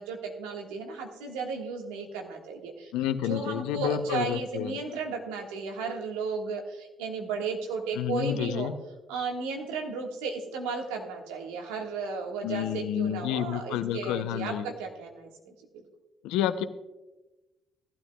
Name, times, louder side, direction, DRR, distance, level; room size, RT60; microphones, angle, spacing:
voice 1, 0.0-2.9 3.2-8.7 9.1-15.5, right 4 dB, 80° right, 2 dB, 1.5 m, -34 dB
voice 2, 2.9-4.7 8.0-8.7 12.4-14.7 16.2-16.6, left 10 dB, 80° left, 11 dB, 0.6 m, -29 dB
17.5 x 12.0 x 2.3 m, 1.1 s
hypercardioid pair, 50°, 0 cm